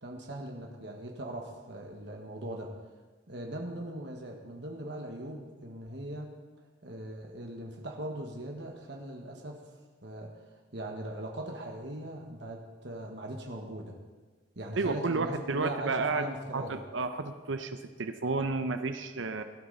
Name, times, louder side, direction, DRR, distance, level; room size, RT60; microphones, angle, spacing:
voice 1, 0.0-2.7 3.3-6.3 6.8-9.6 10.0-10.4 10.7-13.9 14.5-16.8, right 1 dB, 65° right, 1 dB, 1.5 m, -40 dB
voice 2, 14.8-16.3 16.5-19.4, right 3 dB, 80° right, 8 dB, 0.7 m, -31 dB
18.0 x 12.0 x 4.0 m, 1.3 s
head